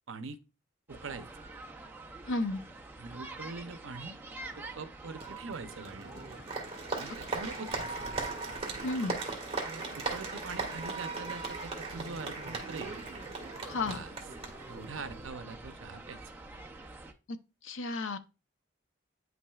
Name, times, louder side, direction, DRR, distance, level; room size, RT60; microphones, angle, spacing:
voice 1, 0.1-0.4 0.9-1.5 3.0-4.1 4.6-6.1 6.9-8.0 9.6-13.0 13.8-14.1 14.7-16.2, right 4 dB, 75° right, 0.7 m, -43 dB
sound 1, 0.9-17.1, right 2 dB, 10° right, 0.6 m, -47 dB
voice 2, 2.3-2.6 8.8-9.2 13.7-14.0 17.3-17.4 17.6-18.2, left 2 dB, 70° left, 0.7 m, -32 dB
Applause, 5.2-15.3, right 3 dB, 30° right, 1.6 m, -38 dB
9.4 x 5.9 x 2.4 m
head